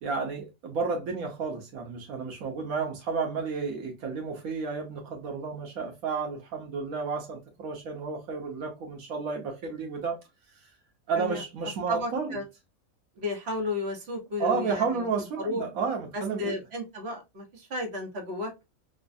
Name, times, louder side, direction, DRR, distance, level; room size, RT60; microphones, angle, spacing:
voice 1, 0.0-10.2 10.5-10.7 11.1-12.4 14.4-16.6, right 5 dB, 75° right, 1.2 m, -31 dB
voice 2, 11.9-12.4 13.2-15.1 15.4-15.6 16.1-18.7, left 2 dB, 50° right, 1.3 m, -33 dB
5.1 x 2.3 x 2.5 m
omnidirectional pair, 1.5 m